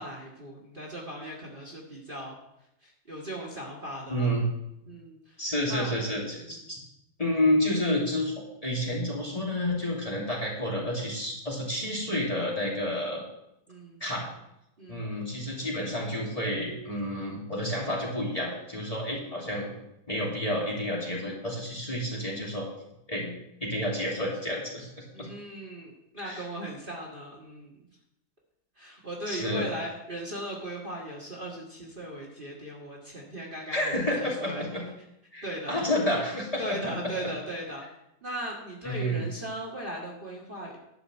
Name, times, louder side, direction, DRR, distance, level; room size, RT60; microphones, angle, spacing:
voice 1, 0.0-2.4 2.8-4.3 4.9-5.4 5.7-6.0 6.4-6.7 13.7-14.0 14.8-15.1 25.1-27.8 28.8-34.7 35.4-35.9 36.6-37.8 38.2-40.8, right 1 dB, 30° right, -2 dB, 1.9 m, -38 dB
voice 2, 4.1-4.5 5.4-6.8 7.2-13.2 14.0-14.3 14.9-19.8 20.1-22.7 23.1-23.3 23.6-25.3 26.2-26.4 29.3-29.7 33.7-34.8 35.3-37.1 38.8-39.3, left 1 dB, 20° left, -4 dB, 2.7 m, -30 dB
11.5 x 5.3 x 7.5 m, 0.84 s
omnidirectional pair, 1.9 m